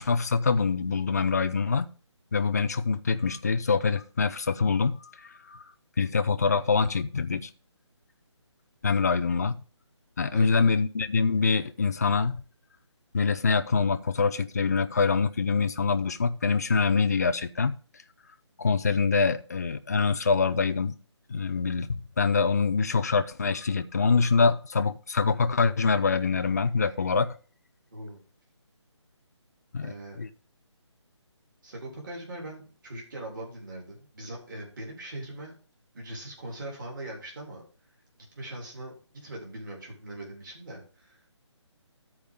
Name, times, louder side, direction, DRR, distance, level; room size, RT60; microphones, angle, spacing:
voice 1, 0.0-1.9 2.3-5.6 6.0-7.5 8.8-9.6 10.2-12.4 13.1-17.8 18.6-20.9 21.3-27.3 29.7-30.3, left 4 dB, 35° left, 0.5 m, -25 dB
voice 2, 10.3-10.7 27.9-28.2 29.8-30.2 31.6-35.5 35.9-37.6 38.3-39.0 39.2-41.3, right 1 dB, 40° right, 3.4 m, -41 dB
14.0 x 4.7 x 3.6 m
hypercardioid pair, 170°, 15 cm